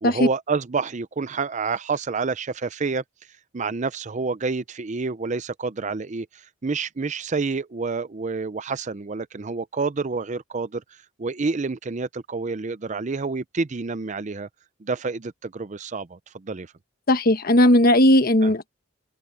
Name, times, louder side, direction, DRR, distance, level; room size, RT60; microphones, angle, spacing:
voice 1, 0.0-3.0 3.5-10.8 11.2-14.5 14.8-16.7 18.4-18.5, right 4 dB, 40° right, 0.6 m, -28 dB
voice 2, 17.1-18.7, left 1 dB, 50° left, 1.3 m, -17 dB
open air
head